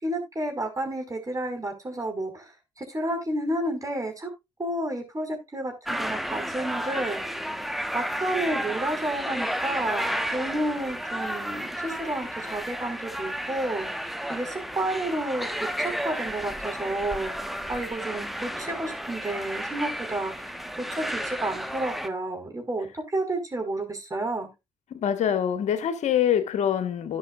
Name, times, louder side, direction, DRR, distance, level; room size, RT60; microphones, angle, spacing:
voice 1, 0.0-2.5 2.8-4.3 4.6-7.4 7.9-13.9 14.3-17.3 17.7-20.5 20.8-24.5, right 1 dB, 25° right, 5.1 m, -31 dB
sound 1, 5.9-22.1, equal, ahead, 1.3 m, -32 dB
voice 2, 24.9-27.2, left 9 dB, 55° left, 1.5 m, -25 dB
17.0 x 5.8 x 2.4 m
figure-of-eight pair, 40°, 14 cm